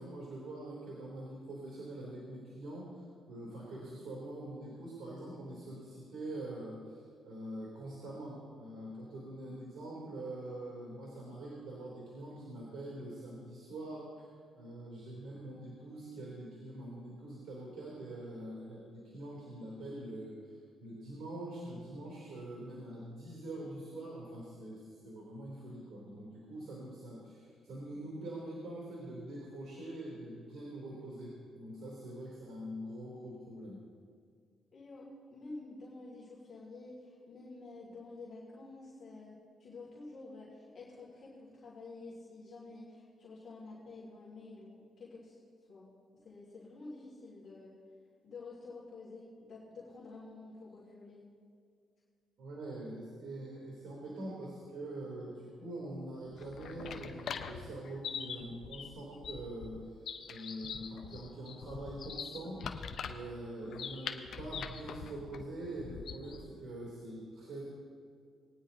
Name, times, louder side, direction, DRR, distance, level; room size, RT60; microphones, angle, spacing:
voice 1, 0.0-2.9 3.3-7.0 7.2-14.3 14.5-20.5 20.8-33.8 52.4-67.6, right 1 dB, 65° right, -4 dB, 3.3 m, -44 dB
voice 2, 34.7-45.4 45.7-45.9 46.2-47.8 48.2-51.3, left 3 dB, 50° left, -6 dB, 2.5 m, -49 dB
sound 1, 56.3-66.5, left 6 dB, 65° left, 0.8 m, -43 dB
21.0 x 9.7 x 2.9 m, 2.2 s
cardioid pair, 90°, 0 cm